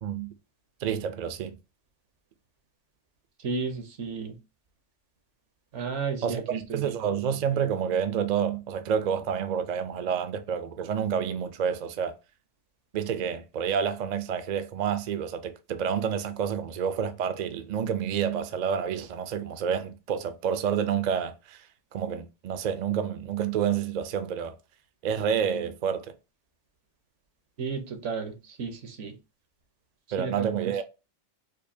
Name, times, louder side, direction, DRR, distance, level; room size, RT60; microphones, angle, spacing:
voice 1, 0.8-1.6 6.2-12.1 12.9-21.6 21.9-24.5 25.0-26.1 30.1-30.8, right 8 dB, 60° right, 0.4 m, -29 dB
voice 2, 3.4-4.4 5.7-6.9 27.6-29.2 30.2-30.8, right 5 dB, 80° right, 1.2 m, -33 dB
5.0 x 2.1 x 2.6 m
omnidirectional pair, 1.2 m